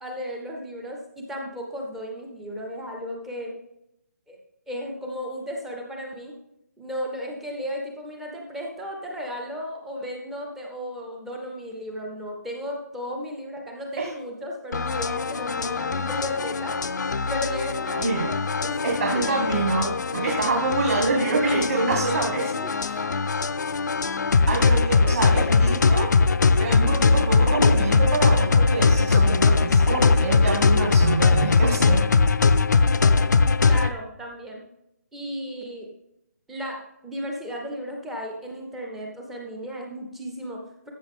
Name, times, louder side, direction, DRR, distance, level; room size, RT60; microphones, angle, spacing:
voice 1, 0.0-3.5 4.3-4.4 4.7-6.4 6.8-16.8 17.3-18.4 18.6-18.8 22.5-22.7 25.2-25.4 33.7-34.6 35.1-35.9 36.5-40.9, equal, ahead, 0 dB, 0.4 m, -34 dB
sound 1, 14.7-33.9, left 4 dB, 85° left, 0.6 m, -21 dB
voice 2, 18.0-18.3 18.8-22.5 22.8-23.0 24.5-26.1 26.6-32.4, right 3 dB, 55° right, 1 dB, 1.6 m, -26 dB
13.5 x 6.4 x 3.5 m, 0.82 s
hypercardioid pair, 180°, 9 cm